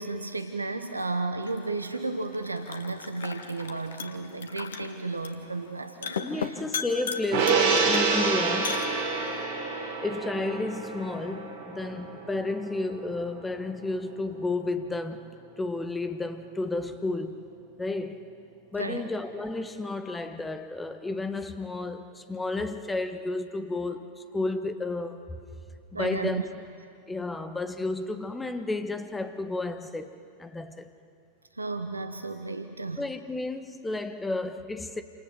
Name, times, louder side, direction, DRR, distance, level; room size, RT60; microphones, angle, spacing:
voice 1, 0.0-6.6 18.8-19.1 25.9-26.4 31.5-33.0, right 3 dB, 80° right, 1.1 m, -33 dB
sound 1, 1.4-9.4, left 6 dB, 65° left, 1.9 m, -38 dB
voice 2, 6.2-8.8 10.0-15.2 15.6-17.5 17.8-18.3 18.7-25.2 25.9-26.4 27.1-30.9 33.0-35.0, left 2 dB, 10° left, 1.7 m, -32 dB
Gong, 7.3-13.9 14.3-14.4, right 4 dB, 50° right, 4.3 m, -28 dB
29.0 x 27.0 x 7.4 m
figure-of-eight pair, 90°, 0 cm